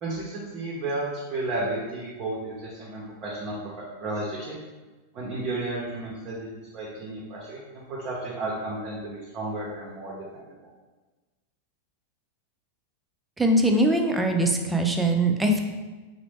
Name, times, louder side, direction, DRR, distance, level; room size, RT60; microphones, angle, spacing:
voice 1, 0.0-4.5 5.1-10.1, right 2 dB, 40° right, -6 dB, 0.7 m, -33 dB
voice 2, 13.4-15.6, right 1 dB, 10° right, 3 dB, 0.4 m, -22 dB
2.9 x 2.0 x 3.3 m, 1.2 s
hypercardioid pair, 100°, 0 cm